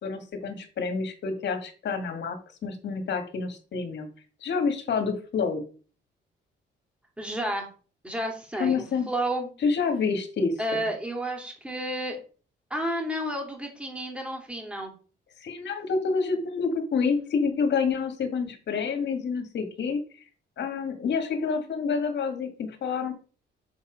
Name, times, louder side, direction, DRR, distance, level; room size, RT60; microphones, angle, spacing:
voice 1, 0.0-4.1 4.4-5.6 8.6-9.1 9.6-10.8 15.4-20.0 20.6-23.1, left 5 dB, 65° left, 7 dB, 1.8 m, -28 dB
voice 2, 7.2-7.7 8.0-9.5 10.6-12.2 12.7-14.9, right 1 dB, 5° right, 1 dB, 2.6 m, -31 dB
6.8 x 4.2 x 5.1 m, 0.38 s
cardioid pair, 90°, 20 cm